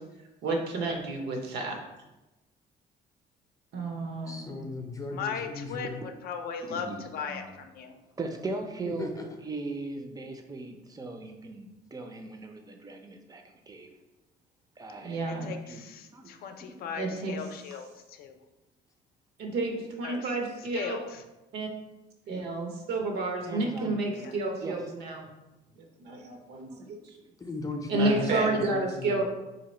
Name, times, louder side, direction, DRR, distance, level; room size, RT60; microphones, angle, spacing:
voice 1, 0.4-1.8 3.7-4.5 15.0-15.5 16.9-17.3 19.4-21.0 21.5-21.7 22.3-25.3 25.8-26.9 27.9-29.2, right 2 dB, 75° right, 2 dB, 0.8 m, -30 dB
voice 2, 4.3-6.0 8.9-9.2 27.4-29.2, left 3 dB, 20° left, 3 dB, 0.6 m, -37 dB
voice 3, 5.1-5.9 6.2-7.9 15.3-18.4 20.0-20.4 20.7-21.2 22.3-22.4 24.2-24.3, left 6 dB, 65° left, 6 dB, 0.5 m, -38 dB
voice 4, 6.6-7.5 8.2-9.1 9.4-13.9 14.8-16.3 16.6-17.1 23.5-24.3 24.6-24.8 26.7-26.9, right 3 dB, 20° right, 4 dB, 0.5 m, -39 dB
3.0 x 2.8 x 4.2 m, 1.0 s
cardioid pair, 110°, 17 cm